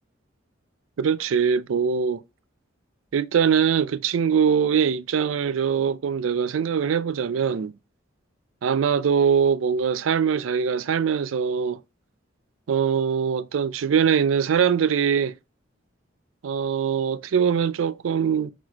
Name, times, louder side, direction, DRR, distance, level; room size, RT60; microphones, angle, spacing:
voice 1, 1.0-2.2 3.1-7.7 8.6-11.8 12.7-15.3 16.4-18.5, right 7 dB, 75° right, 0.4 m, -22 dB
4.5 x 3.9 x 2.9 m
head